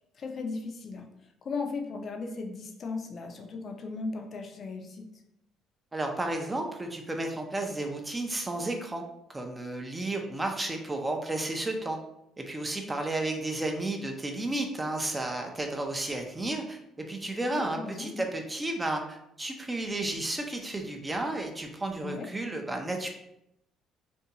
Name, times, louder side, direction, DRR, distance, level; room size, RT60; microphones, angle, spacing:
voice 1, 0.2-1.1 1.4-5.1 17.5-18.2 22.0-22.3, left 4 dB, 45° left, 3 dB, 0.4 m, -36 dB
voice 2, 5.9-9.0 9.3-12.0 12.4-23.1, right 2 dB, 20° right, 3 dB, 0.4 m, -32 dB
2.5 x 2.2 x 2.8 m, 0.82 s
cardioid pair, 90°, 0 cm